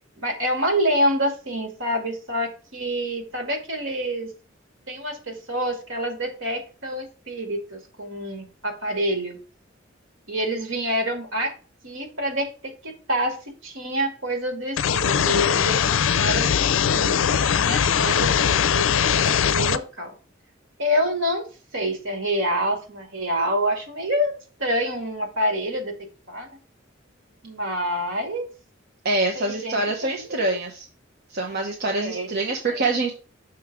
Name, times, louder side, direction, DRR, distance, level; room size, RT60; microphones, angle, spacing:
voice 1, 0.2-4.3 4.9-9.4 10.3-11.5 11.8-20.1 20.8-21.5 21.7-26.0 26.3-26.6 27.4-28.5 29.4-29.8 30.5-30.6 32.0-32.3, equal, 85° right, 4 dB, 2.1 m, -27 dB
sound 1, 14.8-19.8, left 8 dB, 85° left, 0.4 m, -21 dB
voice 2, 29.0-30.9 31.3-33.1, right 2 dB, 55° right, 1 dB, 1.0 m, -25 dB
6.3 x 3.6 x 6.0 m, 0.36 s
head